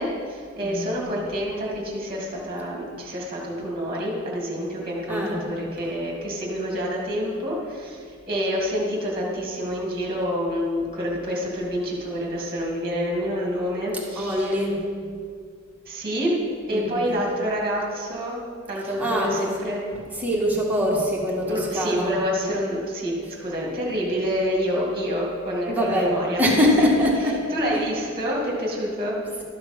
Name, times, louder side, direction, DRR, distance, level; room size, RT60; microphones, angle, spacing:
voice 1, 0.0-14.6 15.9-16.3 16.7-18.4 18.7-19.8 21.4-23.1 23.4-26.4 27.0-27.1 27.5-29.2, equal, 25° right, -3 dB, 2.1 m, -27 dB
voice 2, 0.6-1.0 5.1-5.4 13.9-14.8 16.7-17.1 18.8-19.5 19.9-22.2 23.2-23.4 25.7-27.5 27.7-27.9 29.3-29.4, equal, 10° right, -4 dB, 1.8 m, -24 dB
12.5 x 6.6 x 6.0 m, 2.2 s
head